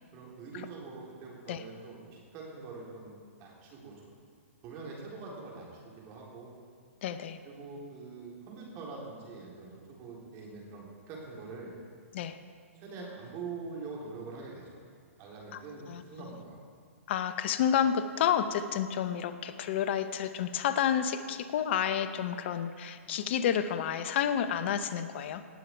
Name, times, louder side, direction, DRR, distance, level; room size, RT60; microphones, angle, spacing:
voice 1, 0.1-3.9 4.6-6.5 7.4-11.7 12.7-14.8 15.2-16.6, right 4 dB, 35° right, -3 dB, 3.6 m, -44 dB
voice 2, 7.0-7.4 12.1-12.4 15.5-15.6 15.9-16.4 17.1-25.4, left 9 dB, 50° left, 11 dB, 0.8 m, -30 dB
18.0 x 7.7 x 4.6 m, 2.1 s
hypercardioid pair, 125°, 8 cm